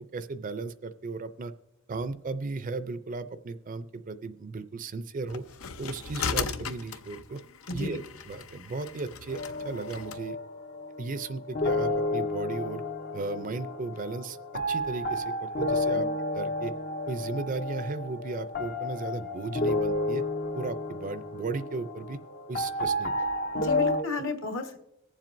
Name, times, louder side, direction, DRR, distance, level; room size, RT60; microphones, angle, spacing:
voice 1, 0.0-1.5 1.9-5.4 5.8-7.4 7.7-8.0 8.3-10.4 11.0-12.8 13.1-14.4 14.7-16.1 16.3-16.7 17.1-20.2 20.5-22.2 22.5-23.1, right 3 dB, 40° right, 12 dB, 0.5 m, -35 dB
sound 1, 5.3-10.2, left 6 dB, 85° left, 0.6 m, -37 dB
voice 2, 7.7-8.0 15.9-16.1 23.5-24.8, left 3 dB, 65° left, 4 dB, 1.4 m, -33 dB
sound 2, 9.3-24.0, left 1 dB, 50° left, 0.6 m, -31 dB
22.0 x 7.4 x 2.6 m, 0.86 s
head